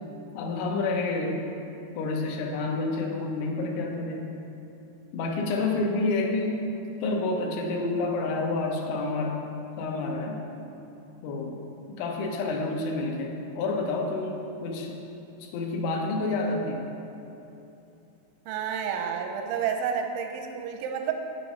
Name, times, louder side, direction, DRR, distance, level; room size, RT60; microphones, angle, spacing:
voice 1, 0.4-1.5 2.0-4.3 5.1-6.7 7.0-9.4 9.8-10.4 11.2-11.6 11.9-15.0 15.4-16.9, left 3 dB, 85° left, 1 dB, 3.4 m, -29 dB
voice 2, 18.5-21.1, right 7 dB, 90° right, 4 dB, 3.0 m, -30 dB
10.0 x 8.9 x 5.2 m, 2.9 s
omnidirectional pair, 5.4 m